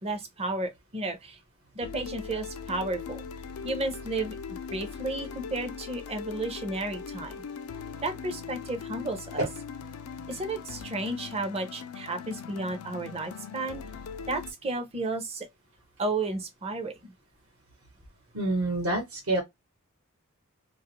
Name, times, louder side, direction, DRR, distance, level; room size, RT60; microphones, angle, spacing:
voice 1, 0.0-1.4 1.7-3.2 3.6-7.3 8.0-9.4 10.3-13.8 14.3-15.5 16.0-17.1, right 2 dB, 30° right, 0.6 m, -33 dB
sound 1, 1.8-14.5, left 6 dB, 80° left, 0.4 m, -40 dB
voice 2, 18.3-19.4, right 2 dB, 70° right, 1.0 m, -27 dB
2.4 x 2.1 x 2.9 m
head